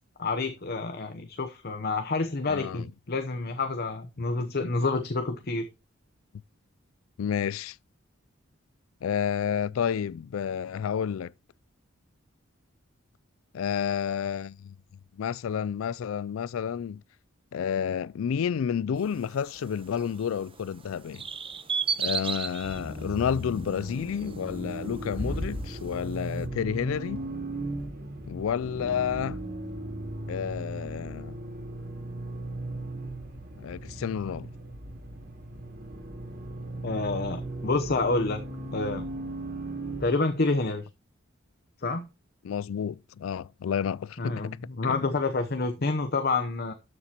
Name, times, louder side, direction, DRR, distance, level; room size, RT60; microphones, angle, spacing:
voice 1, 0.2-5.7 36.8-38.4 38.7-39.1 40.0-40.9 41.8-42.1 44.2-46.7, left 3 dB, 50° left, 0.8 m, -28 dB
voice 2, 2.5-2.9 7.2-7.8 9.0-11.3 13.5-14.7 15.1-17.0 17.5-21.3 22.0-27.2 28.3-29.4 30.3-31.3 33.6-34.5 42.4-44.6 44.9-45.0, left 7 dB, 80° left, 0.3 m, -30 dB
sound 1, 19.0-26.4, right 6 dB, 25° right, 0.8 m, -37 dB
Accelerating revving vroom, 22.6-40.1, right 1 dB, 50° right, 3.7 m, -37 dB
12.5 x 7.0 x 2.9 m
head